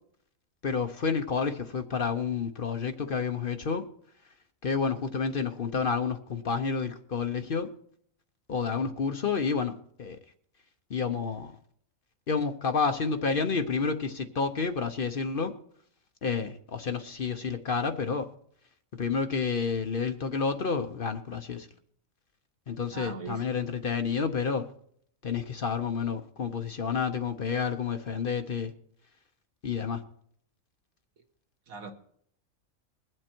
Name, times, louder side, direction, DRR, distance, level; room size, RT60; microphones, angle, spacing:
voice 1, 0.6-3.8 4.6-7.7 8.5-9.7 10.0-10.2 10.9-11.5 12.3-15.5 16.2-18.3 19.0-21.7 22.7-24.6 25.2-28.7 29.6-30.0, left 5 dB, 50° left, 0.8 m, -29 dB
voice 2, 22.9-23.4 31.7-31.9, right 4 dB, 85° right, 1.7 m, -39 dB
21.0 x 7.7 x 4.4 m
omnidirectional pair, 1.4 m